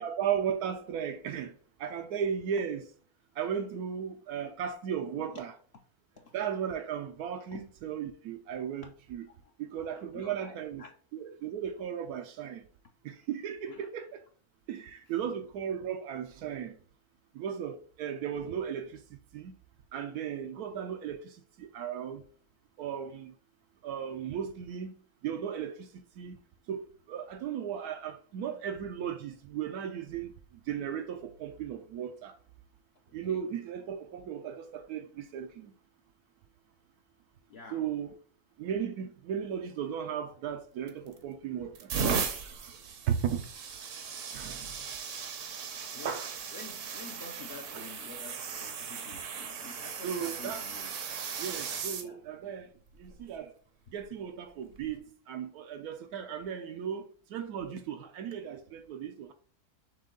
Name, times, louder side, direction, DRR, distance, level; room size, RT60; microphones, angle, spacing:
voice 1, 0.0-1.5 1.8-2.9 3.4-5.5 6.3-9.3 9.6-10.8 11.1-12.6 13.0-14.2 14.7-16.8 17.3-19.5 19.9-22.2 22.8-23.3 23.8-24.9 25.2-26.4 26.7-30.3 30.7-32.4 33.1-35.7 37.7-38.1 38.6-42.2 42.4-42.5 43.1-43.5 44.3-44.8 46.0-46.3 47.7-47.8 50.0-50.6 51.4-52.7 53.0-53.5 53.9-59.3, right 8 dB, 85° right, 1.1 m, -36 dB
voice 2, 9.9-10.9 13.7-13.9 15.2-15.4 33.3-33.4 37.5-37.8 45.9-46.2 46.5-50.9 52.0-52.2, left 4 dB, 60° left, 0.7 m, -48 dB
sound 1, 40.9-41.2 41.7-52.1 52.9-53.2 54.7-54.9, right 6 dB, 60° right, 1.0 m, -37 dB
6.3 x 2.3 x 3.7 m
omnidirectional pair, 1.6 m